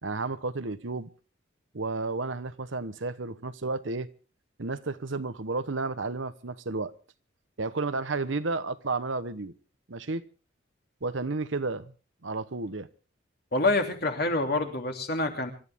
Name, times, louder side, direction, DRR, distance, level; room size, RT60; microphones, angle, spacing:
voice 1, 0.0-1.1 1.7-4.1 4.6-6.9 7.6-9.5 9.9-10.2 11.0-11.9 12.2-12.9, right 3 dB, 75° right, 1.0 m, -32 dB
voice 2, 13.5-15.5, left 2 dB, 50° left, 3.0 m, -27 dB
26.5 x 13.0 x 3.6 m
head